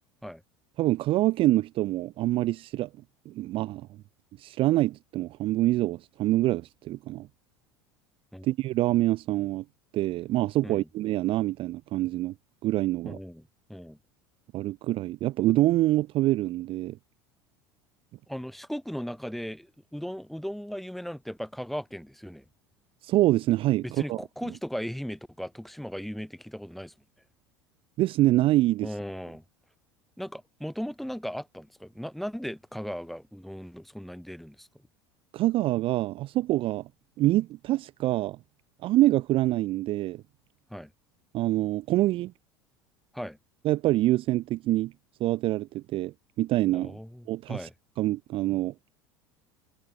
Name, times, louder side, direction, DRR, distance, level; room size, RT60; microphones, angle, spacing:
voice 1, 0.8-2.9 3.3-3.9 4.4-7.3 8.4-9.6 9.9-12.3 12.6-13.2 14.5-17.0 23.0-24.2 28.0-28.9 35.3-36.9 37.2-38.4 38.8-40.2 41.3-42.3 43.6-44.9 45.2-47.0 47.3-47.7 48.0-48.7, right 16 dB, 40° right, 0.4 m, -25 dB
voice 2, 13.0-13.4 13.7-14.0 18.3-22.4 23.8-26.9 28.8-29.4 30.2-34.7 40.7-40.9 43.1-43.4 46.7-47.7, equal, ahead, 1.6 m, -37 dB
figure-of-eight pair, 70°, 14 cm